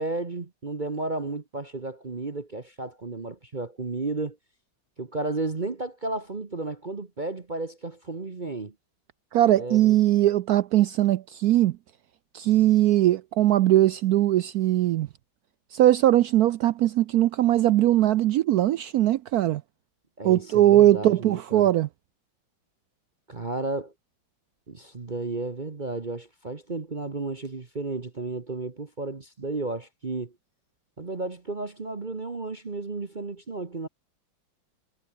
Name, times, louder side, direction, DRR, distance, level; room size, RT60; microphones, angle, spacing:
voice 1, 0.0-4.4 5.0-8.7 9.6-10.0 20.2-21.7 23.3-23.9 24.7-30.3 31.0-33.9, right 3 dB, 30° right, 1.1 m, -33 dB
voice 2, 9.3-11.8 12.3-15.1 15.7-19.6 20.2-21.9, right 13 dB, 75° right, 0.8 m, -20 dB
omnidirectional pair, 2.1 m